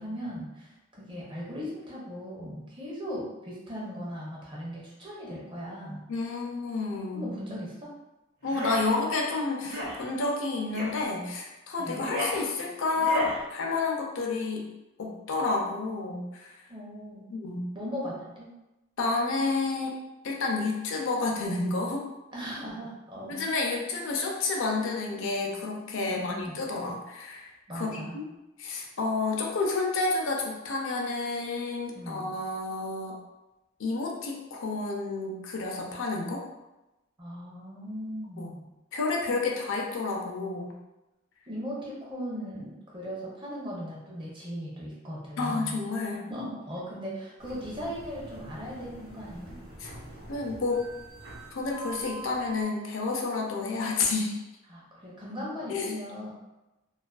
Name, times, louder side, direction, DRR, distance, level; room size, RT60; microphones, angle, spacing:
voice 1, 0.0-6.0 7.1-7.9 11.8-12.0 16.7-17.3 17.7-18.5 22.3-23.4 26.1-26.6 27.7-28.2 31.9-32.3 37.2-38.6 41.5-45.7 46.1-49.6 54.7-56.3, equal, 25° right, -5 dB, 0.5 m, -38 dB
voice 2, 6.1-7.2 8.4-14.7 15.0-16.7 17.3-17.7 19.0-20.0 20.2-22.1 23.3-28.3 28.6-33.2 33.8-36.4 38.4-38.5 38.9-40.7 45.4-46.2 49.8-49.9 50.3-50.8 51.5-54.4 55.7-55.9, left 3 dB, 65° left, 0 dB, 0.4 m, -30 dB
sound 1, 8.4-8.9 9.6-10.0 10.7-11.0 11.8-12.4 13.0-13.4, left 1 dB, 50° right, 0.9 m, -33 dB
sound 2, 47.4-52.6, right 3 dB, 80° right, 0.9 m, -44 dB
2.3 x 2.3 x 2.3 m, 0.98 s
head